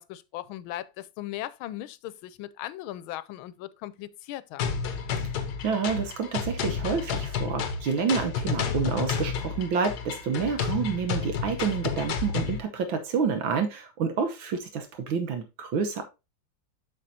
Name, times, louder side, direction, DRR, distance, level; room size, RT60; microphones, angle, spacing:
voice 1, 0.0-4.7, left 14 dB, 85° left, 1.4 m, -38 dB
sound 1, 4.6-12.6, left 6 dB, 60° left, 1.3 m, -31 dB
voice 2, 5.6-16.0, right 6 dB, 75° right, 1.7 m, -28 dB
7.9 x 6.5 x 2.7 m
omnidirectional pair, 2.2 m